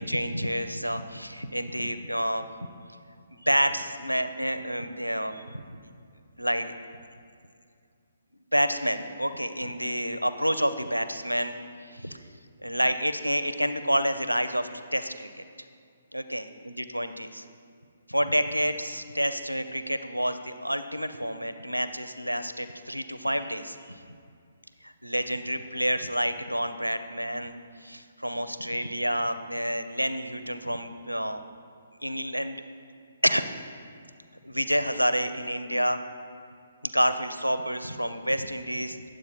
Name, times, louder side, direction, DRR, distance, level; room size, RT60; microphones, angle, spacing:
voice 1, 0.0-2.4 3.3-5.8 6.4-6.7 8.5-12.2 12.6-15.3 16.1-17.4 18.1-24.0 24.8-27.5 27.8-31.4 32.0-32.6 33.2-33.5 34.4-36.0 36.8-39.0, equal, 90° right, 11 dB, 0.5 m, -29 dB
9.1 x 7.5 x 4.1 m, 2.3 s
figure-of-eight pair, 135°, 0 cm